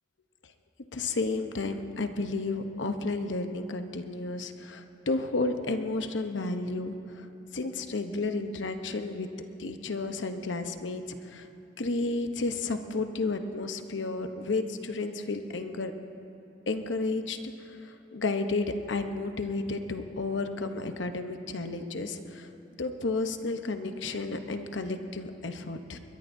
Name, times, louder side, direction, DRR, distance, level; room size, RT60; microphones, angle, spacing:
voice 1, 0.9-7.3 7.5-9.3 9.6-11.5 11.8-15.9 16.7-22.5 22.8-26.0, left 3 dB, 90° left, 7 dB, 0.9 m, -32 dB
22.0 x 21.0 x 2.7 m, 2.7 s
head